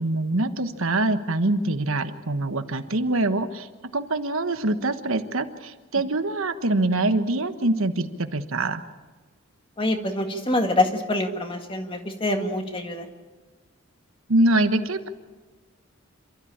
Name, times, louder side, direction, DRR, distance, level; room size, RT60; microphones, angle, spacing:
voice 1, 0.0-3.7 3.9-8.8 14.3-15.1, right 2 dB, 80° right, 9 dB, 1.3 m, -24 dB
voice 2, 9.8-13.1, left 1 dB, 25° left, 5 dB, 2.0 m, -25 dB
28.0 x 13.0 x 8.7 m, 1.4 s
head